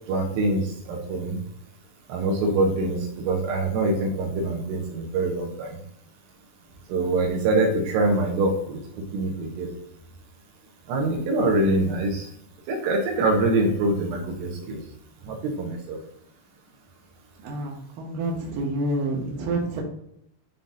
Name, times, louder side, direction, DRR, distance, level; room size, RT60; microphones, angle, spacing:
voice 1, 0.1-1.4 2.1-5.8 6.9-8.8 9.1-9.7 10.9-12.3 12.7-14.8 15.3-16.0, right 2 dB, 85° right, 1 dB, 3.2 m, -24 dB
voice 2, 17.4-19.8, right 2 dB, 65° right, -1 dB, 2.6 m, -28 dB
10.0 x 3.8 x 2.7 m, 0.74 s
omnidirectional pair, 4.8 m